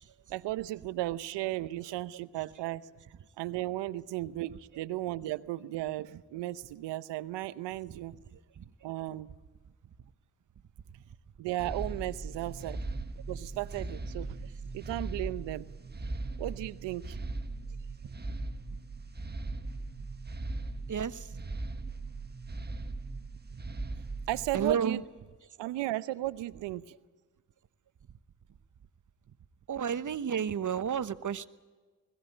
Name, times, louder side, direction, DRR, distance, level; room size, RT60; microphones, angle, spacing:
voice 1, 0.3-2.9 3.4-8.1 8.8-9.3 11.4-12.8 13.3-14.4 14.7-15.7 16.4-17.2 24.3-25.0 25.6-26.8, right 16 dB, 80° right, 16 dB, 0.8 m, -35 dB
voice 2, 8.3-8.7 14.4-14.5 19.6-19.7 20.9-21.4 24.5-25.0 29.7-31.5, right 7 dB, 45° right, 14 dB, 1.1 m, -32 dB
sound 1, 11.6-24.7, right 2 dB, 25° right, 1.4 m, -39 dB
21.0 x 16.5 x 8.8 m, 1.4 s
hypercardioid pair, 45°, 43 cm